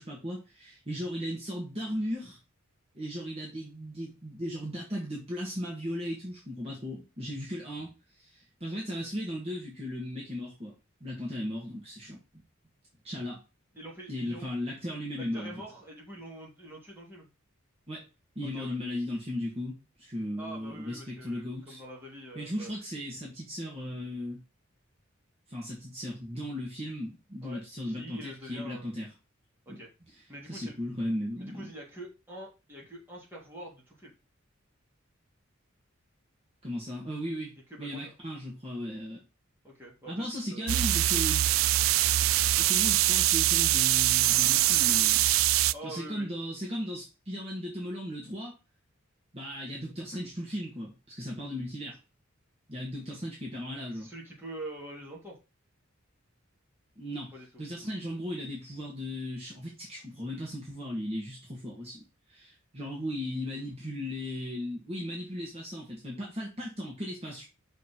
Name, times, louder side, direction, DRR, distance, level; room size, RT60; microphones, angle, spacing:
voice 1, 0.0-2.4 2.9-10.7 11.0-12.2 13.0-13.4 14.1-15.5 17.9-18.0 18.4-21.8 22.4-24.4 25.5-29.1 29.7-29.8 30.5-31.7 36.6-39.2 40.1-41.5 42.6-45.2 45.8-48.5 49.3-52.0 52.7-54.1 57.0-57.3 57.6-62.0 62.3-67.5, equal, 30° right, -4 dB, 2.1 m, -36 dB
voice 2, 13.7-14.5 15.1-17.3 18.5-18.8 20.4-22.7 27.4-28.9 29.6-29.9 30.3-30.7 31.4-34.1 37.7-38.1 39.6-40.8 45.7-46.3 53.9-55.4 57.3-57.5, right 1 dB, 10° right, -4 dB, 3.0 m, -45 dB
sound 1, 40.7-45.7, right 15 dB, 70° right, 0.3 m, -23 dB
6.4 x 5.0 x 4.6 m, 0.28 s
head